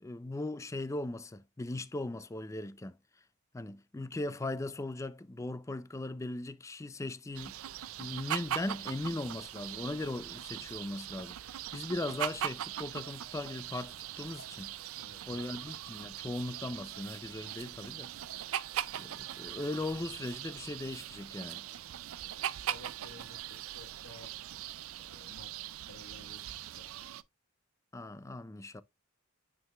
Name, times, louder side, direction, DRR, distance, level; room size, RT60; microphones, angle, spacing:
voice 1, 0.0-2.9 3.5-7.6 8.0-14.7 15.2-18.1 18.9-21.6 27.9-28.8, left 2 dB, 15° left, 0.3 m, -38 dB
sound 1, 7.3-27.2, right 11 dB, 75° right, 0.4 m, -41 dB
voice 2, 14.9-15.4 15.8-15.9 22.3-24.3 25.1-25.5 25.8-26.5 26.8-26.9, left 1 dB, 85° left, 1.4 m, -54 dB
9.5 x 4.7 x 2.3 m
head